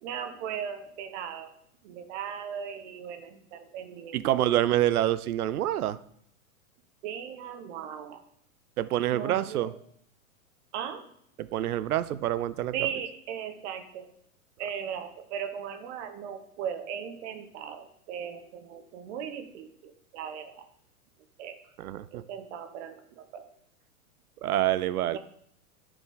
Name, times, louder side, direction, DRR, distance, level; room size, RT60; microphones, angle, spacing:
voice 1, 0.0-1.6 1.8-4.4 7.0-8.2 9.1-9.8 10.7-11.1 12.7-14.1 14.6-20.7 21.4-21.6 22.1-23.5 25.1-25.2, right 8 dB, 50° right, 8 dB, 1.1 m, -38 dB
voice 2, 4.1-6.0 8.8-9.7 11.4-12.7 21.8-22.2 24.4-25.2, right 13 dB, 80° right, 16 dB, 0.6 m, -27 dB
9.7 x 5.0 x 3.8 m, 0.70 s
hypercardioid pair, 110°, 43 cm